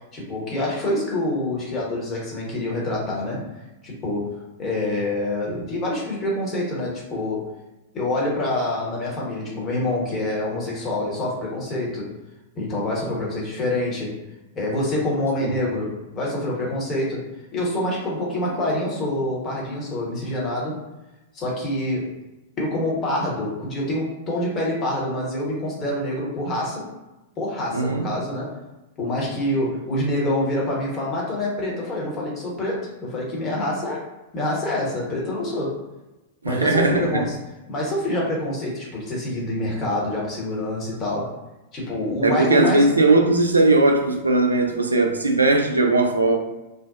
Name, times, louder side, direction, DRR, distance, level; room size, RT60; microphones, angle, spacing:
voice 1, 0.1-3.5 3.8-4.3 4.6-7.5 7.9-12.1 12.5-14.1 14.5-17.2 17.5-20.8 21.3-22.1 22.6-26.8 27.4-28.6 29.0-34.0 34.3-35.7 36.5-37.3 37.7-41.3 41.7-42.9, left 1 dB, 25° left, -4 dB, 0.9 m, -26 dB
voice 2, 27.7-28.1 36.4-37.3 42.2-46.4, right 2 dB, 85° right, 3 dB, 0.4 m, -19 dB
2.4 x 2.1 x 2.4 m, 1.0 s
figure-of-eight pair, 100°, 0 cm